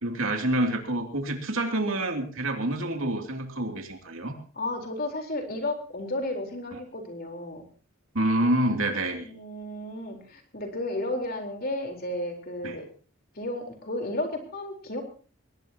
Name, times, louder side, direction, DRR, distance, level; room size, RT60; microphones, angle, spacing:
voice 1, 0.0-4.3 6.7-6.8 8.1-9.3 12.6-12.8, right 1 dB, 85° right, 4 dB, 2.8 m, -27 dB
voice 2, 4.5-7.7 9.2-12.9 13.4-15.0, left 1 dB, 50° left, 3 dB, 4.1 m, -33 dB
22.0 x 19.0 x 2.9 m, 0.38 s
head